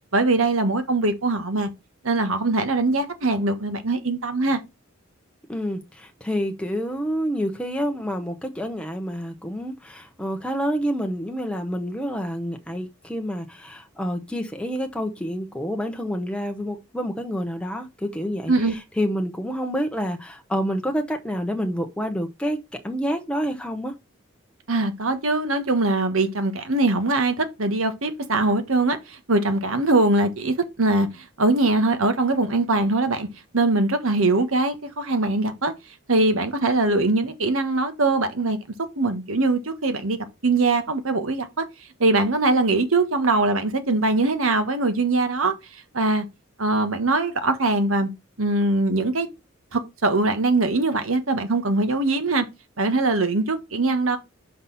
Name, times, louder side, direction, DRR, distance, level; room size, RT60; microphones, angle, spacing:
voice 1, 0.1-1.7 2.0-4.6 18.5-18.7 24.7-31.1 31.4-33.3 33.5-35.7 36.1-38.6 39.0-40.2 40.4-41.6 42.0-45.5 45.9-46.2 46.6-48.1 48.4-49.3 49.7-52.5 52.8-54.2, right 2 dB, 80° right, 1.3 m, -22 dB
voice 2, 5.5-22.6 22.8-23.9, equal, 5° left, 0.8 m, -28 dB
5.9 x 5.5 x 4.0 m
head